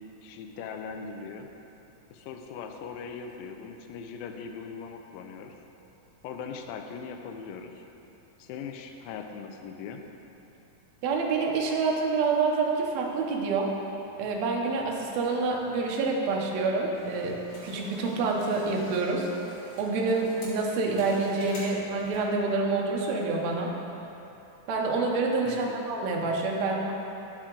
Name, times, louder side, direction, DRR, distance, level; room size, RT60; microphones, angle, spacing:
voice 1, 0.2-1.5 2.1-5.5 6.2-7.8 8.4-10.0 25.5-25.8, left 6 dB, 80° left, 4 dB, 2.3 m, -40 dB
voice 2, 11.0-13.7 14.2-19.3 19.8-23.7 24.7-26.9, right 3 dB, 75° right, -1 dB, 1.6 m, -27 dB
sound 1, 16.9-22.4, left 1 dB, 50° left, 1.2 m, -46 dB
11.5 x 5.9 x 3.8 m, 2.9 s
omnidirectional pair, 4.3 m